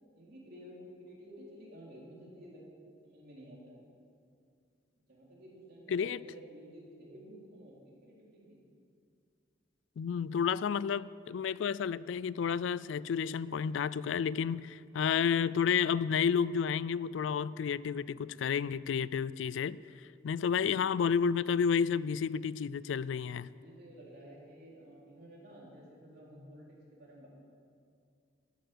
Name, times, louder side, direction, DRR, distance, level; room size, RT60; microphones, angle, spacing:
voice 1, 0.1-2.7 3.0-3.8 5.1-8.6 20.5-21.0 23.5-27.3, equal, 60° right, -4 dB, 3.6 m, -52 dB
voice 2, 5.9-6.2 10.0-19.8 20.2-23.5, left 7 dB, 85° left, 19 dB, 0.3 m, -31 dB
14.0 x 9.1 x 6.7 m, 2.4 s
head